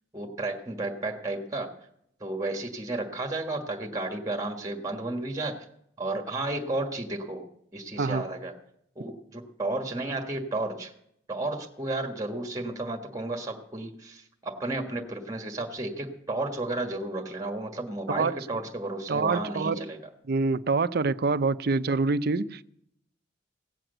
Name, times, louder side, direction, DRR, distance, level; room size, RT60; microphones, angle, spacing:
voice 1, 0.1-1.7 2.2-5.6 6.0-7.4 7.7-8.5 9.0-10.9 11.3-20.0, right 2 dB, 20° right, 1.5 m, -32 dB
voice 2, 19.1-19.8 20.3-22.6, right 3 dB, 55° right, 0.6 m, -26 dB
16.5 x 7.7 x 7.9 m
head